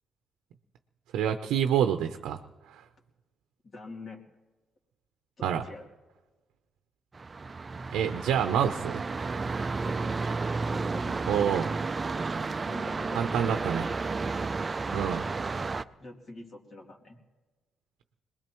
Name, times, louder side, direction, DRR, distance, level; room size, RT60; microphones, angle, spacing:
voice 1, 1.1-2.4 2.7-2.8 5.4-5.6 7.9-9.0 11.3-11.7 13.1-13.9 14.9-15.3, right 9 dB, 85° right, 7 dB, 0.7 m, -27 dB
voice 2, 3.6-4.2 5.4-5.9 9.8-10.3 10.7-11.4 12.7-13.6 16.0-17.2, left 2 dB, 45° left, -1 dB, 3.1 m, -44 dB
sound 1, 7.1-15.8, right 4 dB, 30° right, 0.5 m, -32 dB
23.0 x 20.5 x 3.1 m, 1.2 s
cardioid pair, 90°, 0 cm